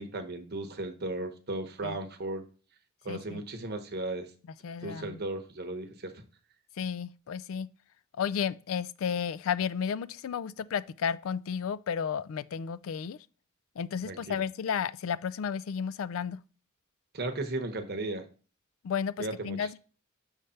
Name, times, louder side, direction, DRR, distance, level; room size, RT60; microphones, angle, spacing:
voice 1, 0.0-2.4 3.0-4.3 4.8-6.2 14.1-14.4 17.1-18.3 19.2-19.7, right 2 dB, 50° right, 0.9 m, -36 dB
voice 2, 3.1-3.4 4.6-5.2 6.8-7.7 8.2-13.2 13.8-16.4 18.8-19.8, left 7 dB, 70° left, 0.3 m, -33 dB
6.5 x 3.2 x 5.6 m
head